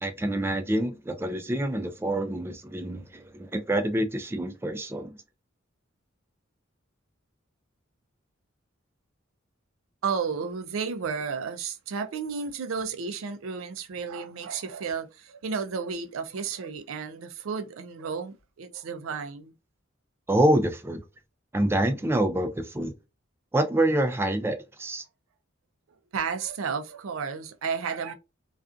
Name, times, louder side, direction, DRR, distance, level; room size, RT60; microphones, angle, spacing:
voice 1, 0.0-5.2 20.3-21.0 21.5-22.9 23.5-25.0, right 1 dB, 10° right, 0.3 m, -26 dB
voice 2, 10.0-19.5 26.1-28.1, right 5 dB, 90° right, 0.4 m, -32 dB
2.4 x 2.4 x 2.3 m
head